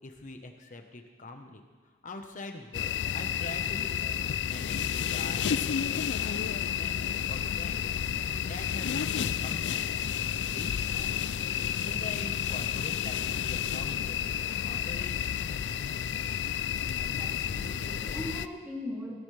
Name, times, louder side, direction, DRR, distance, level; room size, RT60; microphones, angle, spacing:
voice 1, 0.0-1.6 2.0-4.2 4.5-7.9 8.1-10.2 10.5-11.3 11.8-15.2, left 2 dB, 45° left, 5 dB, 1.2 m, -44 dB
sound 1, 2.7-18.5, left 8 dB, 85° left, 0.4 m, -31 dB
voice 2, 17.1-19.2, left 1 dB, 10° right, -4 dB, 2.9 m, -40 dB
17.5 x 13.0 x 3.4 m, 1.5 s
head